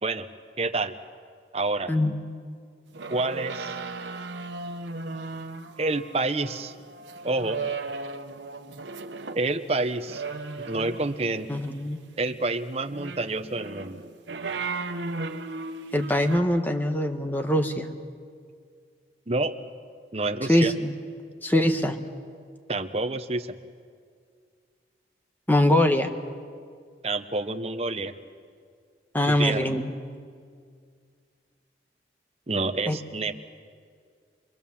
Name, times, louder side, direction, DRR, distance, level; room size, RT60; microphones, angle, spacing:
voice 1, 0.6-1.0 1.5-1.9 3.1-3.7 5.8-6.7 7.2-7.6 9.3-10.2 10.6-11.5 12.2-14.0 19.3-19.5 20.1-20.7 22.7-23.5 27.0-28.1 29.3-29.7 32.5-33.3, right 2 dB, 35° right, 8 dB, 0.9 m, -28 dB
sound 1, 2.9-9.5 10.1-11.3 12.8-16.4, right 3 dB, 90° right, 1.2 m, -36 dB
voice 2, 11.5-12.0 15.9-17.9 20.5-20.9 21.4-22.0 25.5-26.1 29.1-29.9 32.9-33.0, left 1 dB, 10° left, 6 dB, 1.2 m, -23 dB
25.0 x 24.0 x 7.2 m, 2.1 s
head